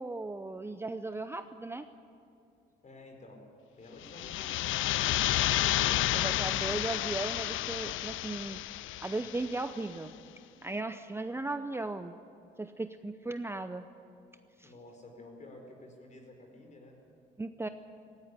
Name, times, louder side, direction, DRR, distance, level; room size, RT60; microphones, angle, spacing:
voice 1, 0.0-1.9 6.1-8.6 9.0-10.1 10.6-12.1 12.6-13.9 14.6-14.7 17.4-17.7, right 2 dB, 10° right, 9 dB, 0.7 m, -36 dB
voice 2, 2.8-3.4 3.8-4.9 5.3-7.2 14.6-17.0, left 2 dB, 40° left, 3 dB, 4.8 m, -51 dB
sound 1, 4.0-9.7, left 15 dB, 85° left, 0.5 m, -31 dB
17.0 x 16.5 x 9.8 m, 2.6 s
cardioid pair, 90°, 20 cm